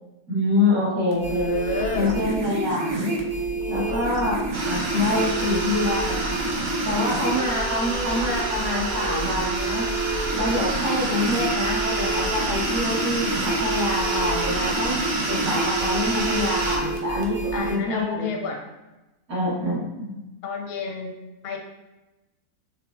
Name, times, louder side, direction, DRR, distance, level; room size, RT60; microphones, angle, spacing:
voice 1, 0.3-1.5 1.9-3.1 3.7-4.4 4.7-6.2 6.8-9.8 10.4-15.0 15.3-18.3 19.3-20.2, left 2 dB, 70° right, -6 dB, 1.7 m, -26 dB
sound 1, 1.1-17.7, right 3 dB, 85° right, 1.2 m, -28 dB
voice 2, 1.2-2.1 17.5-18.6 20.4-21.6, left 4 dB, 60° left, 2 dB, 0.6 m, -30 dB
sound 2, 4.5-16.8, right 2 dB, 55° right, 0.5 m, -29 dB
4.6 x 2.9 x 2.5 m, 1.0 s
omnidirectional pair, 1.6 m